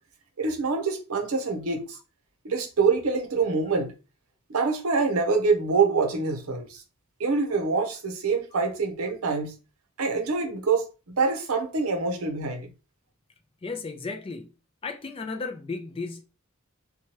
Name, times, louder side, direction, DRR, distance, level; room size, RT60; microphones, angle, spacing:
voice 1, 0.4-2.0 2.4-3.9 4.5-6.8 7.2-9.6 10.0-12.7, right 4 dB, 75° right, 0.7 m, -25 dB
voice 2, 13.6-14.5 14.8-16.2, left 4 dB, 25° left, 0.3 m, -34 dB
2.8 x 2.2 x 2.9 m
head